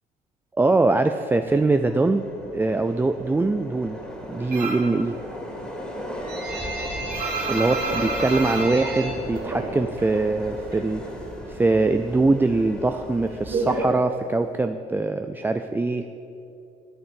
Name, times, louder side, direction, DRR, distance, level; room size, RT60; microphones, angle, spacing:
voice 1, 0.6-2.2 2.5-4.0 4.3-5.2 7.5-11.0 11.5-16.1, right 3 dB, 10° right, 8 dB, 0.4 m, -22 dB
Subway metro underground, 1.4-13.8, equal, 5° left, 2.6 m, -37 dB
sound 1, 4.5-4.9 5.3-10.2 10.4-11.5 11.8-14.6, right 3 dB, 60° right, 3.6 m, -30 dB
11.0 x 8.6 x 7.4 m, 2.7 s
cardioid pair, 110°, 17 cm